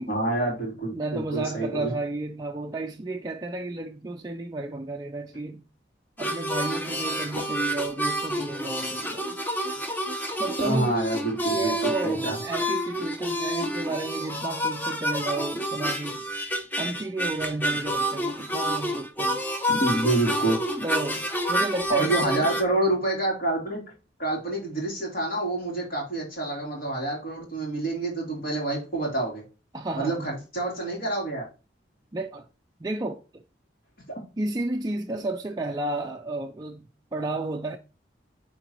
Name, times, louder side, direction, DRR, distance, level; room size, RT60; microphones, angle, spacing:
voice 1, 0.1-1.9 10.6-12.4 19.7-20.6 21.9-23.8 24.2-29.4 30.0-31.5, right 2 dB, 50° left, 3.1 m, -27 dB
voice 2, 0.9-5.7 6.2-9.3 10.4-11.0 11.5-16.3 16.8-19.4 20.8-22.5 29.7-30.4 32.1-32.5 32.8-33.4 34.4-37.8, right 2 dB, 20° right, 0.4 m, -32 dB
sound 1, 6.2-22.6, equal, 10° left, 0.7 m, -29 dB
9.0 x 3.8 x 3.0 m
head